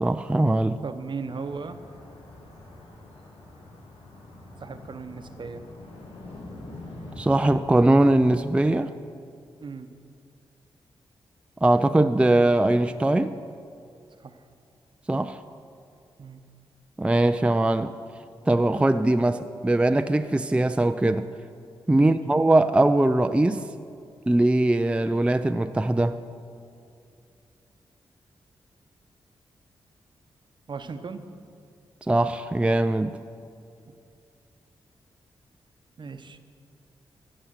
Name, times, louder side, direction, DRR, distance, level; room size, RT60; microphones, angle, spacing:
voice 1, 0.0-0.8 7.2-8.9 11.6-13.4 15.1-15.4 17.0-17.9 18.5-21.3 21.9-23.6 24.3-26.2 32.1-33.2, right 1 dB, 10° right, 9 dB, 0.4 m, -21 dB
voice 2, 0.8-1.8 4.6-5.6 9.6-9.9 14.2-14.4 16.2-16.4 21.9-22.2 30.7-31.3 36.0-36.4, right 4 dB, 50° right, 9 dB, 0.8 m, -36 dB
sound 1, 1.2-8.2, left 2 dB, 70° left, 2.1 m, -44 dB
15.0 x 6.3 x 6.5 m, 2.4 s
cardioid pair, 55°, 10 cm